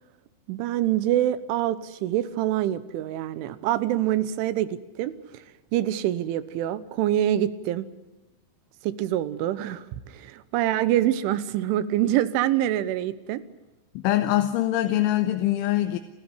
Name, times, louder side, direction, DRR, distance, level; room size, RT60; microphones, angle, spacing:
voice 1, 0.5-5.4 5.7-7.9 8.8-13.4, right 12 dB, 90° right, 15 dB, 3.5 m, -25 dB
voice 2, 14.0-16.0, left 14 dB, 85° left, 8 dB, 3.5 m, -23 dB
29.5 x 15.5 x 9.9 m, 1.1 s
omnidirectional pair, 5.4 m